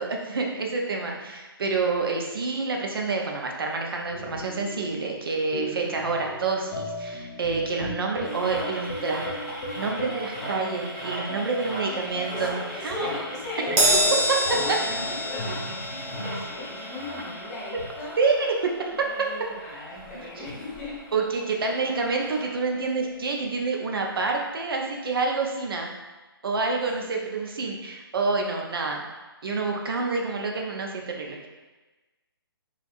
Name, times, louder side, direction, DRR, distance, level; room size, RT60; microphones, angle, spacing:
voice 1, 0.0-9.3 9.7-13.1 18.2-19.0 21.1-25.9 26.4-29.0 29.4-31.5, right 4 dB, 65° right, 1 dB, 0.6 m, -28 dB
sound 1, 4.1-16.4, left 1 dB, 55° left, 0.7 m, -37 dB
voice 2, 5.6-6.0 7.5-8.3 11.9-18.1 18.9-21.0 21.7-21.9 26.9-27.3 28.8-29.0, left 2 dB, 20° left, -7 dB, 1.2 m, -38 dB
sound 2, 8.2-22.4, right 1 dB, 35° right, 1.4 m, -39 dB
Crash cymbal, 13.8-20.4 20.7-21.0 22.0-22.1, equal, 15° right, 0.4 m, -28 dB
3.2 x 2.4 x 2.5 m, 1.2 s
figure-of-eight pair, 145°, 13 cm